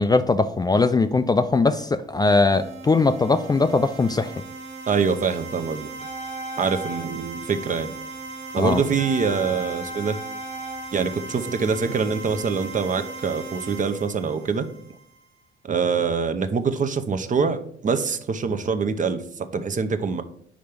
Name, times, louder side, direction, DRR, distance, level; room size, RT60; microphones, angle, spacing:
voice 1, 0.0-4.4 8.6-8.8, left 3 dB, 20° left, 10 dB, 0.4 m, -20 dB
sound 1, 2.5-15.2, right 3 dB, 60° right, 1.4 m, -38 dB
voice 2, 4.9-5.9 6.6-7.9 8.5-10.2 10.9-14.7 15.6-20.2, right 5 dB, 40° right, 9 dB, 0.7 m, -24 dB
sound 2, 6.0-8.0 8.9-12.0 12.4-12.5, right 1 dB, 35° left, 0.9 m, -38 dB
5.1 x 4.5 x 5.2 m, 0.66 s
cardioid pair, 90°, 20 cm